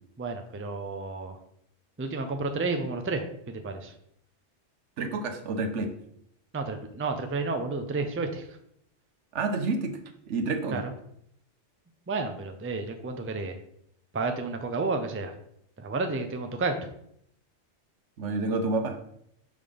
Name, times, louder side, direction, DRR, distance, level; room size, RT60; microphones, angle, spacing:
voice 1, 0.2-1.4 2.0-3.9 6.5-8.5 10.7-10.9 12.1-13.6 14.1-15.3 15.8-16.8, right 3 dB, 20° right, 6 dB, 0.4 m, -31 dB
voice 2, 5.0-6.0 9.3-10.0 10.3-10.8 18.2-19.0, right 3 dB, 80° right, 7 dB, 1.1 m, -29 dB
6.3 x 3.7 x 5.1 m, 0.71 s
omnidirectional pair, 1.2 m